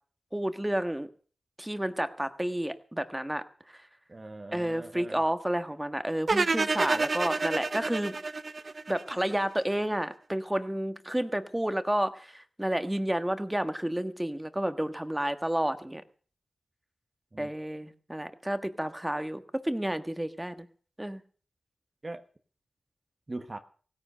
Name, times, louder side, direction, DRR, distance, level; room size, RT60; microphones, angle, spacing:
voice 1, 0.3-1.1 1.6-3.4 4.5-8.2 8.9-16.0 17.4-20.7 21.0-21.2, right 1 dB, 10° right, 10 dB, 1.5 m, -30 dB
voice 2, 4.1-5.2 17.3-17.5 22.0-22.2 23.3-23.6, right 2 dB, 35° right, 7 dB, 1.3 m, -41 dB
sound 1, 6.3-9.4, right 3 dB, 50° right, 0.6 m, -29 dB
16.5 x 10.5 x 6.7 m, 0.44 s
cardioid pair, 60°, 0 cm